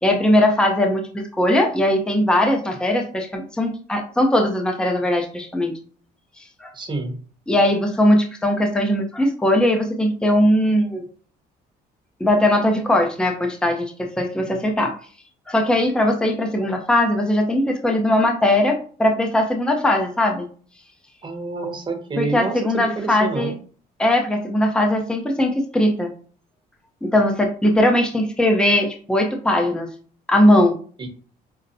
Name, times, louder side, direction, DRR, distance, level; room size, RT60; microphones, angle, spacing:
voice 1, 0.0-5.7 6.4-6.7 7.5-11.0 12.2-15.0 15.5-20.5 22.2-23.5 24.0-26.1 27.0-29.9 30.3-30.7, left 1 dB, 5° left, 3 dB, 0.6 m, -19 dB
voice 2, 6.7-7.2 21.2-23.5 31.0-31.1, right 3 dB, 25° right, 3 dB, 0.9 m, -28 dB
5.3 x 2.1 x 2.6 m, 0.43 s
cardioid pair, 110°, 17 cm